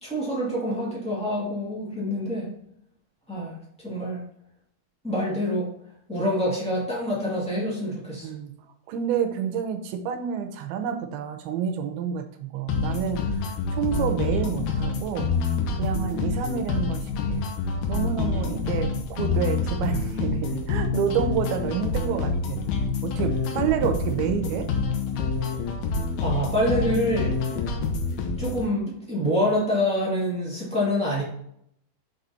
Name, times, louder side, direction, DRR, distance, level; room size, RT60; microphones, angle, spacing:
voice 1, 0.0-2.5 3.3-3.5 3.8-4.2 5.0-5.7 6.1-8.3 26.2-27.3 28.4-31.2, equal, 5° left, -6 dB, 0.7 m, -26 dB
voice 2, 8.2-8.6 8.9-15.3 15.8-17.5 17.9-22.6 23.0-24.7, right 8 dB, 80° right, 6 dB, 2.5 m, -29 dB
sound 1, 12.7-28.7, left 4 dB, 80° left, 2.8 m, -27 dB
6.7 x 4.1 x 4.2 m, 0.71 s
omnidirectional pair, 4.6 m